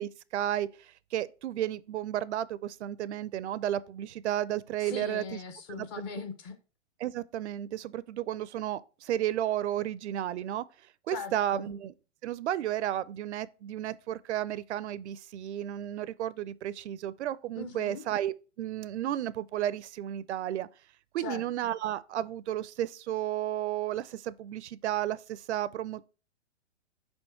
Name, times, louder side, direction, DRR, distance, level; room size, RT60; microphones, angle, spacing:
voice 1, 0.0-5.2 5.8-5.9 7.0-10.6 11.1-11.9 12.2-20.7 21.1-26.0, right 12 dB, 70° right, 0.5 m, -33 dB
voice 2, 4.8-6.6 11.1-11.7 17.6-18.0 21.2-21.4, left 5 dB, 25° left, 0.6 m, -40 dB
5.4 x 4.4 x 4.4 m
hypercardioid pair, 150°, 36 cm